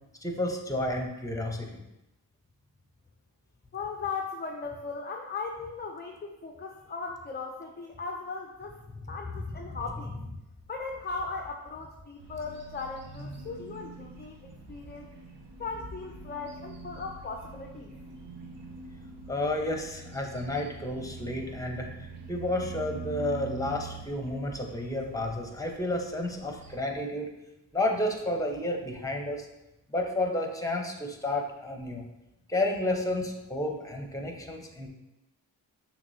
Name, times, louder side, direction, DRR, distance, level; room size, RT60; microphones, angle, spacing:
voice 1, 0.2-1.7 9.0-9.1 9.4-9.8 13.2-13.3 19.3-27.3 27.7-29.5 29.9-32.1 32.5-34.9, left 1 dB, 10° left, 2 dB, 0.9 m, -31 dB
voice 2, 3.7-8.8 9.1-10.2 10.7-15.1 15.6-17.9, left 4 dB, 25° left, 2 dB, 0.5 m, -38 dB
sound 1, 12.2-26.8, right 4 dB, 70° right, 0.9 m, -45 dB
5.9 x 3.3 x 2.7 m, 0.93 s
cardioid pair, 40°, 43 cm